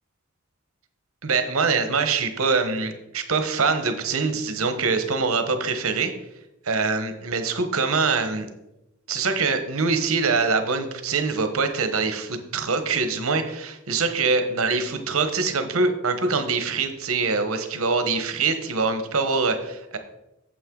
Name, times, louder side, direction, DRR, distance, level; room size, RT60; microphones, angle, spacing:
voice 1, 1.2-6.1 6.6-8.5 9.1-20.0, right 4 dB, 90° right, 8 dB, 1.1 m, -24 dB
8.8 x 7.7 x 3.8 m, 0.89 s
head